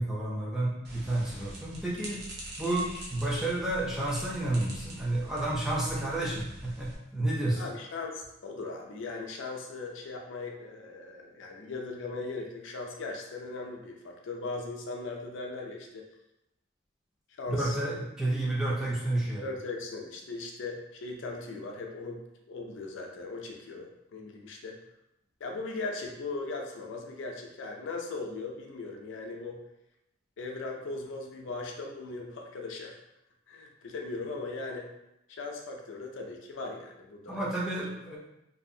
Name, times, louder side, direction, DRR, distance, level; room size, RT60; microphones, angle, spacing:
voice 1, 0.0-2.2 2.6-7.6 17.5-19.4 37.3-38.2, right 1 dB, ahead, -6 dB, 0.4 m, -30 dB
sound 1, 0.8-6.9, right 1 dB, 50° right, 0.6 m, -44 dB
voice 2, 7.6-16.0 17.3-17.8 19.4-22.2 22.5-24.8 25.4-29.6 30.4-33.0 33.5-34.9 35.3-37.4, left 3 dB, 65° left, 1 dB, 0.4 m, -38 dB
2.7 x 2.4 x 2.6 m, 0.86 s
head